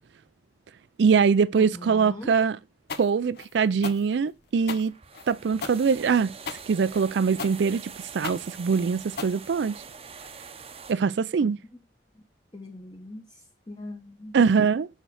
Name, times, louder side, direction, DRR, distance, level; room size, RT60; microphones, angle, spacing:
voice 1, 1.0-2.6 3.0-4.9 5.3-6.3 6.7-9.8 10.9-11.6 14.3-14.9, right 5 dB, 75° right, 0.4 m, -23 dB
voice 2, 1.5-2.3 11.4-11.5 12.5-13.4 13.7-14.3, left 1 dB, 25° left, 0.9 m, -40 dB
sound 1, 2.9-10.0, left 5 dB, 60° left, 0.8 m, -38 dB
sound 2, 4.5-10.9, right 5 dB, 35° right, 0.7 m, -44 dB
6.5 x 4.5 x 6.3 m
head